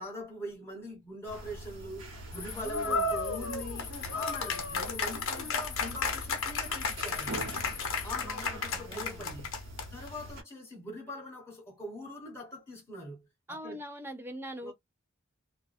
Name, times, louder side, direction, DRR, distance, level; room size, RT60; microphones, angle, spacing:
voice 1, 0.0-7.4 8.0-9.5 9.9-13.8 14.6-14.7, equal, 10° left, 1.2 m, -42 dB
sound 1, 1.2-10.4, equal, 80° right, 1.1 m, -44 dB
sound 2, 2.3-8.1, left 7 dB, 50° left, 0.6 m, -44 dB
voice 2, 2.5-3.1 5.4-5.6 8.2-9.3 13.5-14.7, equal, 10° right, 0.4 m, -44 dB
sound 3, 2.7-10.1, left 4 dB, 80° left, 0.8 m, -33 dB
2.3 x 2.2 x 2.5 m
head